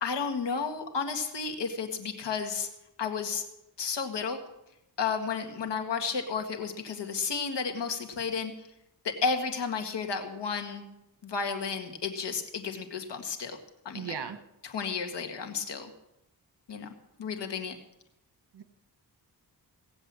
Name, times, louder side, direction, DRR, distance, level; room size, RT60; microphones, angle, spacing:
voice 1, 0.0-2.7 3.0-3.4 3.8-4.4 5.0-8.5 9.0-10.8 11.2-13.6 13.9-14.1 14.7-15.9 16.7-16.9 17.2-17.8, left 5 dB, 80° left, 5 dB, 2.0 m, -32 dB
voice 2, 13.9-14.4 18.5-18.6, right 7 dB, 70° right, 10 dB, 1.4 m, -36 dB
18.0 x 8.0 x 7.5 m, 0.88 s
wide cardioid pair, 95°, 41 cm